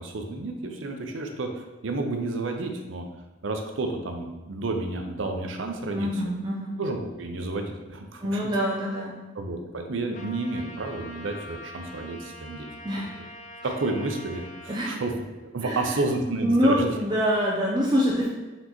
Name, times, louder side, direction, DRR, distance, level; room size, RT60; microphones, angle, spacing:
voice 1, 0.0-3.0 3.4-6.2 6.8-8.4 9.3-12.7 13.6-15.2 15.5-16.9, right 2 dB, 80° right, 4 dB, 0.6 m, -31 dB
voice 2, 6.0-6.8 8.2-9.2 12.8-13.1 14.7-15.0 15.6-15.9 16.4-18.3, equal, 20° right, -5 dB, 0.5 m, -25 dB
Trumpet, 10.1-14.8, left 1 dB, 40° left, 0.5 m, -44 dB
4.2 x 3.9 x 3.0 m, 1.2 s
head